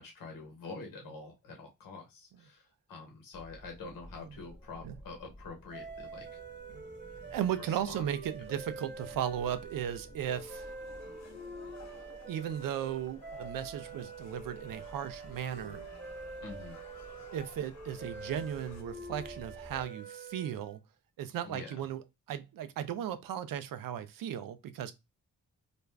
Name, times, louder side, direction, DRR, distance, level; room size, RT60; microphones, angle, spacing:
voice 1, 0.0-6.3 7.6-8.1 16.4-16.8 21.4-21.7, left 3 dB, 90° left, 1.0 m, -46 dB
sound 1, 3.3-19.9, left 1 dB, 15° left, 0.9 m, -54 dB
sound 2, 5.7-20.8, right 4 dB, 35° right, 0.8 m, -46 dB
voice 2, 7.3-10.7 12.3-15.9 17.3-20.8 21.2-22.0 22.3-24.9, right 10 dB, 85° right, 0.5 m, -36 dB
sound 3, 10.3-18.8, left 7 dB, 55° left, 0.6 m, -58 dB
2.5 x 2.3 x 3.1 m
cardioid pair, 55°, 33 cm